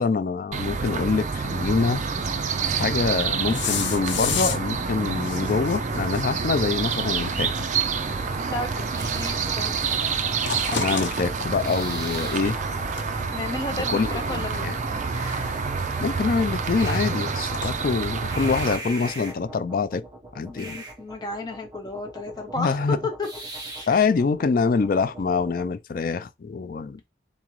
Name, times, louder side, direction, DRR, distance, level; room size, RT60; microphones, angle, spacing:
voice 1, 0.0-2.0 2.8-7.5 10.8-12.6 13.9-14.7 16.0-20.0 20.4-20.8 22.6-23.0 23.9-27.0, left 4 dB, 50° left, 0.4 m, -25 dB
sound 1, 0.5-18.8, right 5 dB, 40° right, 0.4 m, -28 dB
sound 2, 1.8-17.7, left 6 dB, 85° left, 0.7 m, -36 dB
sound 3, 7.0-25.7, right 2 dB, 20° right, 1.0 m, -41 dB
voice 2, 8.5-9.7 10.6-10.9 13.3-15.0 20.5-23.3 23.8-24.1, left 2 dB, 20° left, 0.7 m, -33 dB
3.9 x 3.6 x 3.1 m
head